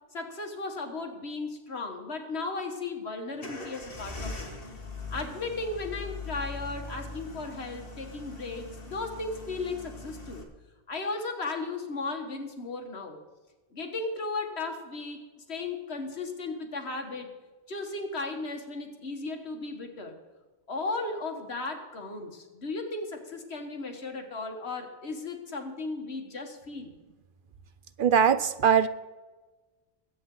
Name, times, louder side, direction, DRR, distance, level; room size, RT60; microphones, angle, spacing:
voice 1, 0.1-4.4 5.1-10.4 10.9-13.2 13.7-15.2 15.5-17.3 17.7-20.2 20.7-26.9, left 3 dB, 75° left, 4 dB, 2.0 m, -35 dB
sound 1, 3.4-10.4, left 3 dB, 60° left, 2.1 m, -41 dB
voice 2, 28.0-28.9, right 7 dB, 60° right, 14 dB, 0.7 m, -21 dB
21.5 x 8.7 x 3.9 m, 1.2 s
omnidirectional pair, 1.1 m